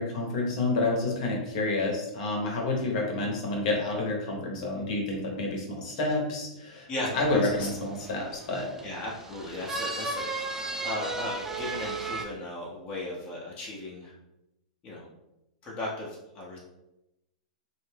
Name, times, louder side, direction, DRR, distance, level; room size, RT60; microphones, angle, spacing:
voice 1, 0.0-6.9 7.1-8.7, left 2 dB, 60° left, -1 dB, 0.9 m, -29 dB
voice 2, 6.9-7.7 8.8-14.1 14.8-15.1 15.6-16.6, left 1 dB, 30° left, -4 dB, 0.7 m, -36 dB
sound 1, 7.0-12.2, right 3 dB, 10° right, 0.4 m, -36 dB
2.6 x 2.1 x 3.3 m, 0.92 s
hypercardioid pair, 110°, 4 cm